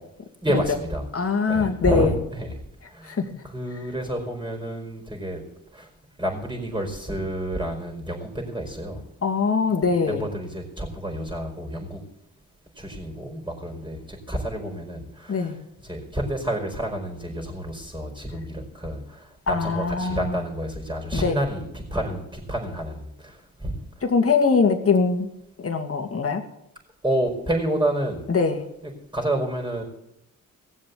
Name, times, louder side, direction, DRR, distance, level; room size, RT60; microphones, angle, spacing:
voice 1, 0.4-1.0 1.5-2.5 2.9-3.1 3.5-5.4 5.7-5.9 6.2-9.0 10.0-12.0 12.8-15.5 15.9-19.0 19.5-23.0 23.6-23.7 27.0-28.2 29.1-29.8, right 1 dB, 10° right, 1 dB, 5.0 m, -29 dB
voice 2, 1.1-2.2 3.1-3.3 9.2-10.3 15.3-15.6 19.5-20.4 21.1-21.4 24.0-25.3 25.6-26.4 28.3-28.6, left 4 dB, 45° left, 4 dB, 2.3 m, -22 dB
17.5 x 7.4 x 8.5 m, 0.83 s
cardioid pair, 60°, 34 cm